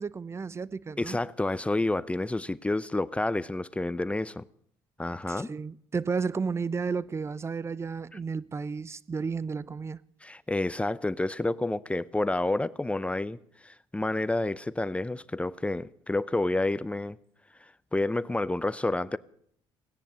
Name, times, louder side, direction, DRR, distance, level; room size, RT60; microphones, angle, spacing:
voice 1, 0.0-1.2 5.3-10.0, right 5 dB, 25° right, 0.7 m, -32 dB
voice 2, 1.0-4.5 5.0-5.5 8.1-8.2 10.2-17.2 17.6-19.2, left 2 dB, 10° left, 0.6 m, -29 dB
17.0 x 10.0 x 8.2 m
supercardioid pair, 75°, 10 cm